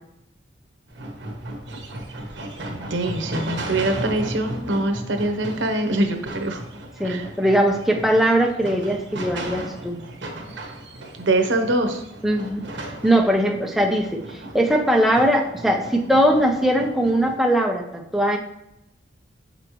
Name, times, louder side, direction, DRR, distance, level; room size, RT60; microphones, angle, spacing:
sound 1, 0.9-17.4, right 1 dB, 70° right, 1.1 m, -35 dB
voice 1, 2.7-6.6 7.0-7.3 11.1-12.0, right 2 dB, 85° right, 6 dB, 0.8 m, -23 dB
voice 2, 7.0-10.0 12.2-12.6 13.0-18.4, equal, ahead, 1 dB, 0.6 m, -20 dB
7.0 x 5.2 x 3.0 m, 0.83 s
head